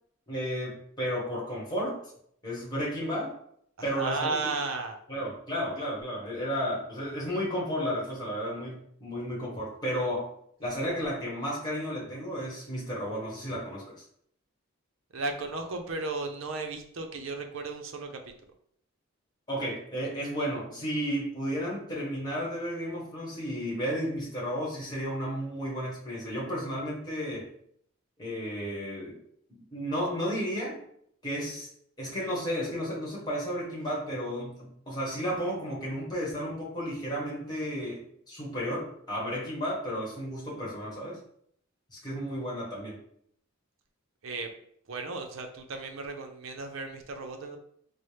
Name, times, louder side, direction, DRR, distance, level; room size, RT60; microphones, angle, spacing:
voice 1, 0.3-2.0 2.4-3.3 3.8-4.4 5.1-10.3 10.6-14.0 19.5-27.5 28.2-29.2 29.7-30.8 31.2-31.7 32.0-41.2 41.9-43.0, equal, 20° left, -5 dB, 1.1 m, -33 dB
voice 2, 3.8-5.0 15.1-18.2 44.2-44.5 44.9-47.6, right 3 dB, 65° right, 5 dB, 0.5 m, -34 dB
4.2 x 2.0 x 3.2 m, 0.67 s
head